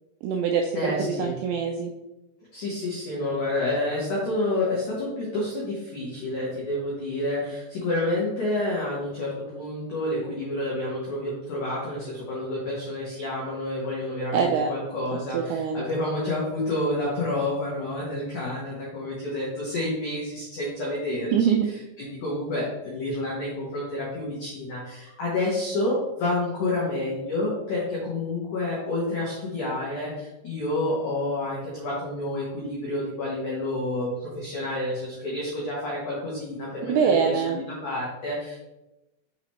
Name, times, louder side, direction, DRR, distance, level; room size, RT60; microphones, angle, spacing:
voice 1, 0.2-1.9 14.3-14.7 15.3-15.9 21.3-21.7 36.9-37.6, right 6 dB, 85° right, 3 dB, 2.6 m, -24 dB
voice 2, 0.7-1.3 2.5-21.5 22.0-38.6, left 1 dB, 90° left, -5 dB, 1.7 m, -29 dB
6.1 x 5.8 x 3.0 m, 0.95 s
omnidirectional pair, 5.8 m